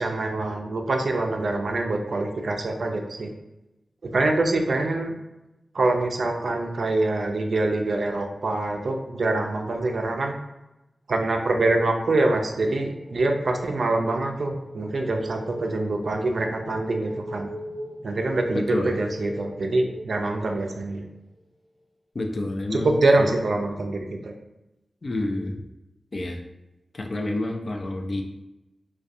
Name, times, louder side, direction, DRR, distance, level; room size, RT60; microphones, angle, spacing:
voice 1, 0.0-3.3 4.0-5.2 5.7-10.4 11.1-17.5 18.0-21.1 22.7-24.3, right 2 dB, 75° right, 3 dB, 0.3 m, -25 dB
sound 1, 12.7-21.1, equal, 10° left, 0.8 m, -39 dB
voice 2, 18.5-18.9 22.1-22.9 23.2-23.4 25.0-25.6 26.1-26.4 26.9-28.2, left 2 dB, 55° left, 3 dB, 0.3 m, -28 dB
2.6 x 2.2 x 2.4 m, 0.96 s
wide cardioid pair, 70°, 0 cm